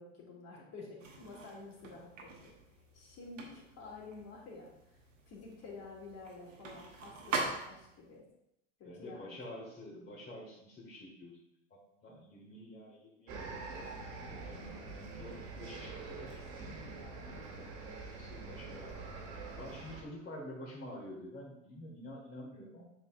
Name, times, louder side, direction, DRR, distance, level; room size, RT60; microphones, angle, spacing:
voice 1, 0.0-2.5 2.9-5.0 5.3-8.2 8.8-9.4 18.4-18.8, left 3 dB, 40° left, -3 dB, 2.6 m, -50 dB
Overhead Projector Focus Knob, 1.0-8.1, right 4 dB, 80° right, 1.2 m, -43 dB
voice 2, 8.8-11.4 11.7-13.3 14.5-16.4 18.1-22.8, left 1 dB, 25° left, -5 dB, 1.8 m, -48 dB
sound 1, 13.3-20.0, right 3 dB, 55° right, 1.9 m, -45 dB
7.7 x 5.6 x 2.6 m, 0.83 s
figure-of-eight pair, 80°, 38 cm